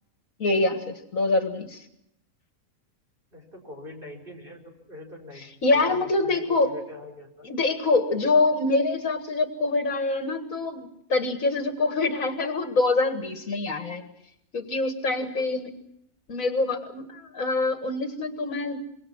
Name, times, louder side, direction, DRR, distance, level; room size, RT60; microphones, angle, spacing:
voice 1, 0.4-1.9 5.6-6.7 7.4-14.1 14.5-15.7 16.3-18.8, left 3 dB, 70° left, 7 dB, 2.1 m, -25 dB
voice 2, 3.3-7.5 15.2-15.5, left 2 dB, 35° right, 1 dB, 5.1 m, -43 dB
25.5 x 22.0 x 6.1 m, 0.79 s
omnidirectional pair, 1.5 m